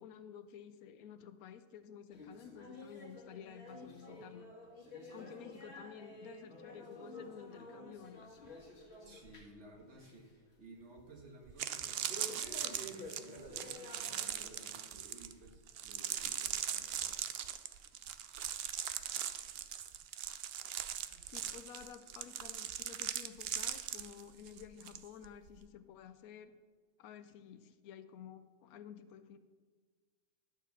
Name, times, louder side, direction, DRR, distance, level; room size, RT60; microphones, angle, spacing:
voice 1, 0.0-4.5 5.1-8.5 21.3-26.6 27.0-29.4, left 8 dB, 80° left, 12 dB, 1.0 m, -52 dB
sound 1, 2.1-9.7 9.9-10.3 10.7-10.8 12.1-14.8 15.2-15.4 16.0-16.1 17.0-17.1 17.9-18.0, left 1 dB, 45° left, 1.8 m, -51 dB
voice 2, 9.0-17.0, right 2 dB, 50° right, 2 dB, 1.6 m, -57 dB
sound 2, 11.0-11.1 11.5-25.0 25.2-25.6, right 10 dB, 70° right, 0.6 m, -40 dB
11.5 x 4.6 x 7.0 m, 1.5 s
omnidirectional pair, 1.5 m